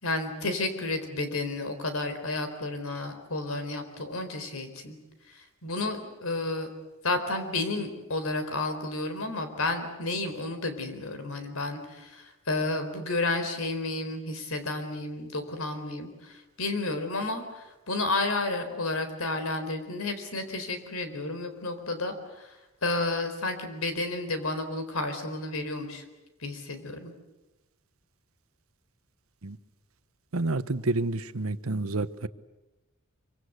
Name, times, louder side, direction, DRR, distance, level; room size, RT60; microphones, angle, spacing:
voice 1, 0.0-5.0 5.3-6.7 7.0-22.6 22.8-26.0 26.4-27.1, left 2 dB, 85° left, 8 dB, 4.2 m, -31 dB
voice 2, 30.3-32.3, right 2 dB, 80° right, 14 dB, 1.0 m, -29 dB
25.5 x 24.5 x 8.1 m, 1.0 s
head